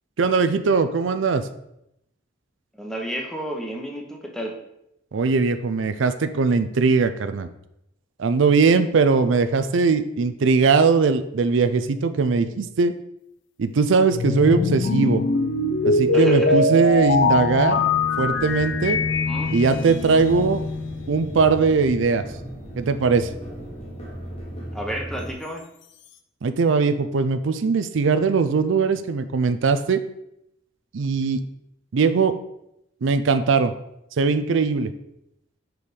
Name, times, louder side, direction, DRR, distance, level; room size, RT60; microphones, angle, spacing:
voice 1, 0.2-1.5 5.1-7.5 8.2-13.0 13.6-15.2 15.8-19.0 19.5-20.7 21.1-22.2 22.8-23.3 26.4-30.0 30.9-31.4 31.9-32.4 33.0-33.7 34.2-34.9, right 4 dB, 80° right, 11 dB, 0.5 m, -20 dB
voice 2, 2.7-4.5 16.1-16.6 19.3-19.5 24.7-25.6, equal, 5° left, 1 dB, 0.8 m, -31 dB
sound 1, 14.1-21.4, left 3 dB, 70° left, 0.6 m, -22 dB
sound 2, 17.4-25.3, equal, 30° left, 1.3 m, -37 dB
5.3 x 4.6 x 4.9 m, 0.80 s
head